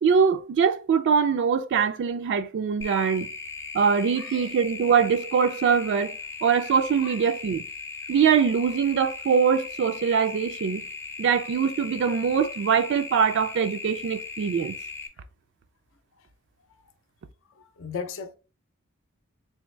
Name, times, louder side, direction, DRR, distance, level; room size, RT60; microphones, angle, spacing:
voice 1, 0.0-3.3 3.7-6.2 6.4-7.6 8.1-10.8 11.2-14.8, right 6 dB, 55° right, 0.3 m, -23 dB
sound 1, 2.8-15.1, left 4 dB, 10° left, 0.5 m, -38 dB
voice 2, 4.2-4.5 7.0-7.3 16.2-16.3 17.5-18.4, left 6 dB, 65° left, 0.5 m, -38 dB
3.4 x 3.1 x 3.1 m
head